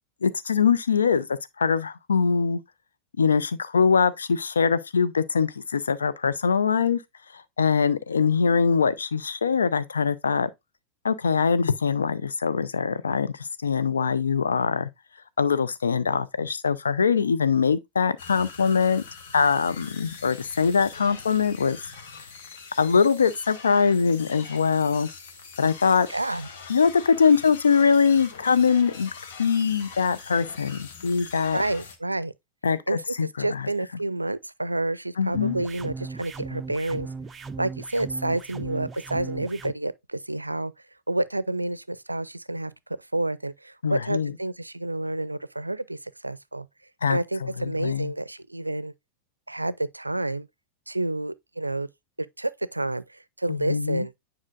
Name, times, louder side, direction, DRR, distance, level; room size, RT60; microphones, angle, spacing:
voice 1, 0.2-2.6 3.2-7.0 7.6-10.5 11.0-13.3 13.6-14.9 15.4-19.0 19.3-21.8 22.8-25.1 25.6-26.1 26.7-29.1 29.4-31.6 32.6-33.6 35.2-35.6 43.8-44.3 47.0-47.2 47.6-48.1 53.5-54.1, left 6 dB, 70° left, 0.6 m, -22 dB
sound 1, 18.2-32.0, left 5 dB, 55° left, 1.5 m, -43 dB
voice 2, 26.1-26.5 31.5-32.3 32.9-37.1 37.6-40.7 41.1-42.7 43.1-46.7 47.1-48.9 49.5-50.5 50.9-51.9 52.2-54.1, right 2 dB, 85° right, 0.4 m, -29 dB
sound 2, 35.3-39.7, right 4 dB, 15° right, 0.5 m, -37 dB
9.7 x 4.9 x 2.4 m
figure-of-eight pair, 90°, 0 cm